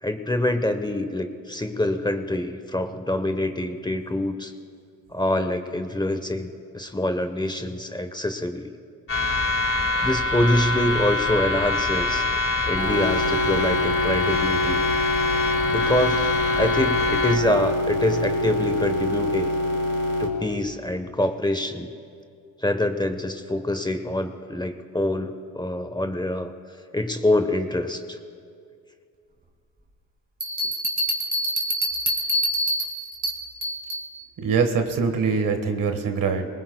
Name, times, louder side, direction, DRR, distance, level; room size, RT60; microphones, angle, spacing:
voice 1, 0.0-4.5 5.1-8.7 10.0-12.2 12.7-14.8 15.7-16.3 16.6-19.5 20.2-21.9 22.6-26.5 26.9-28.2, left 1 dB, 15° left, 8 dB, 1.0 m, -25 dB
sound 1, 9.1-17.4, left 3 dB, 40° left, 2.2 m, -25 dB
sound 2, 12.8-20.3, left 1 dB, 65° left, 2.7 m, -25 dB
sound 3, 30.4-34.1, equal, 25° right, 2.6 m, -26 dB
voice 2, 34.4-36.5, right 5 dB, 70° right, 6 dB, 1.6 m, -23 dB
22.5 x 19.5 x 2.3 m, 2.3 s
cardioid pair, 65°, 34 cm